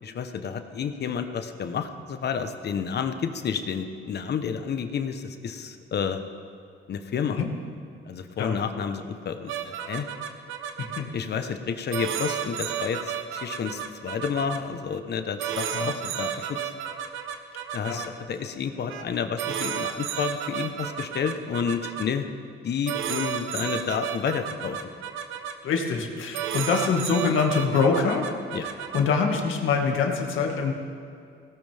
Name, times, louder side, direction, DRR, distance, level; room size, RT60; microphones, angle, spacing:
voice 1, 0.0-6.2 6.9-7.4 8.1-10.1 11.1-16.7 17.7-22.3 22.6-24.8 28.5-28.7, left 7 dB, 55° left, 8 dB, 1.1 m, -30 dB
sound 1, 9.5-11.0 11.9-14.6 15.4-18.1 18.9-19.1 19.4-22.0 22.9-25.5 26.3-29.0, right 9 dB, 85° right, 1.0 m, -32 dB
voice 2, 25.6-28.2 28.6-30.7, left 5 dB, 80° left, 2 dB, 2.0 m, -24 dB
18.5 x 17.0 x 3.6 m, 2.5 s
cardioid pair, 90°, 20 cm